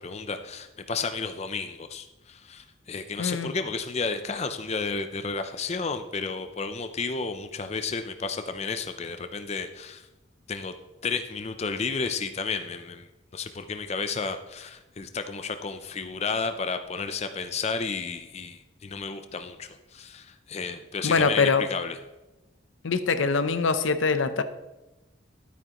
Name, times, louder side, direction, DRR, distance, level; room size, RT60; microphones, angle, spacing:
voice 1, 0.0-10.1 10.5-10.7 11.0-13.1 13.3-22.0, left 4 dB, 35° left, 9 dB, 0.5 m, -32 dB
voice 2, 3.2-3.5 21.0-21.6 22.8-24.4, left 4 dB, 80° left, 11 dB, 0.6 m, -23 dB
12.0 x 9.2 x 3.0 m, 1.0 s
head